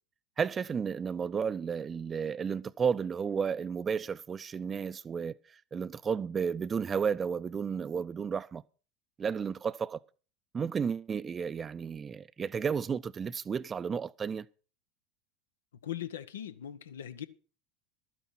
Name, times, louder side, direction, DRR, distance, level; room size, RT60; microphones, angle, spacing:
voice 1, 0.4-5.4 5.7-8.6 9.2-10.0 10.5-14.5, right 6 dB, 25° right, 0.5 m, -32 dB
voice 2, 15.8-17.2, left 11 dB, 75° left, 0.8 m, -39 dB
12.5 x 9.3 x 5.8 m
figure-of-eight pair, 80°, 0 cm